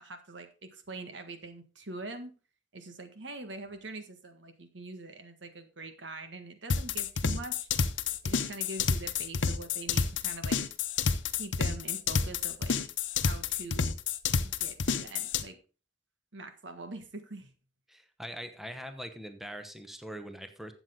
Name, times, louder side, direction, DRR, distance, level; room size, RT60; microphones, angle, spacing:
voice 1, 0.0-2.3 2.7-7.7 8.2-10.6 11.3-12.8 13.2-13.9 14.4-15.6 16.3-17.5, right 2 dB, 75° right, 7 dB, 1.6 m, -43 dB
sound 1, 6.7-15.4, left 5 dB, 90° left, 0.9 m, -29 dB
voice 2, 17.9-20.7, equal, ahead, 7 dB, 1.0 m, -42 dB
12.0 x 8.0 x 3.8 m, 0.35 s
head